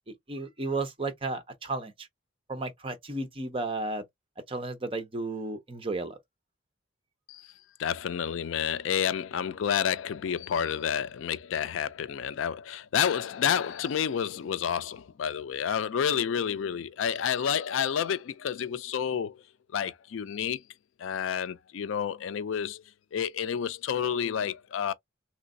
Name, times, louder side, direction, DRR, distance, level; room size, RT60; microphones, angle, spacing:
voice 1, 0.1-2.1 2.5-4.0 4.5-6.2, right 2 dB, 25° right, 0.7 m, -33 dB
voice 2, 7.8-19.4 19.7-20.6 21.0-22.8 23.1-24.9, left 8 dB, 75° left, 0.4 m, -29 dB
3.1 x 3.0 x 2.6 m
head